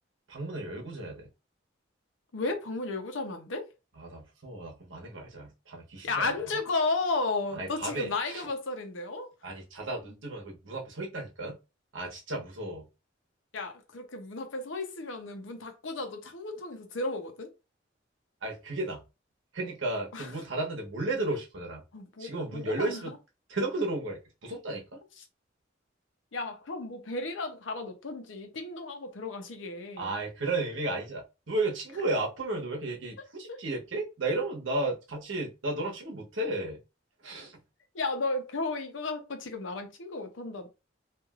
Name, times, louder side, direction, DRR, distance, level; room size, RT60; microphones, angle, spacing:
voice 1, 0.3-1.3 4.0-6.3 7.6-8.5 9.4-11.6 11.9-12.9 18.4-19.0 19.5-21.8 22.2-23.1 23.5-25.0 30.0-36.8 37.2-37.6, right 2 dB, 85° right, 1.0 m, -34 dB
voice 2, 2.3-3.7 6.0-9.3 13.5-17.5 20.1-20.3 21.9-23.1 26.3-30.1 33.5-33.6 37.9-40.7, left 3 dB, 75° left, 0.7 m, -34 dB
3.1 x 2.5 x 2.4 m
head